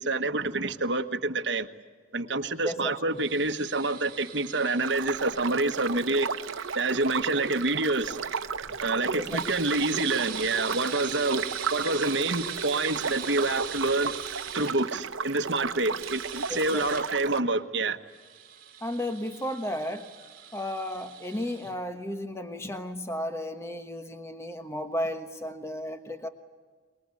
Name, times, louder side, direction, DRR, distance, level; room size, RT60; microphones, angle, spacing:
voice 1, 0.0-1.7 2.1-6.3 6.7-8.2 8.8-11.5 11.7-14.1 14.5-18.0, right 2 dB, 60° right, 1.4 m, -27 dB
voice 2, 2.6-3.2 9.1-9.5 16.5-16.9 18.8-20.1 20.5-26.3, left 1 dB, 15° left, 1.2 m, -34 dB
sound 1, 3.2-8.4 9.2-14.7 15.8-17.0 18.1-21.7, right 8 dB, 45° right, 3.9 m, -41 dB
sound 2, 4.8-17.4, right 5 dB, 85° right, 0.9 m, -34 dB
23.5 x 22.0 x 9.8 m
head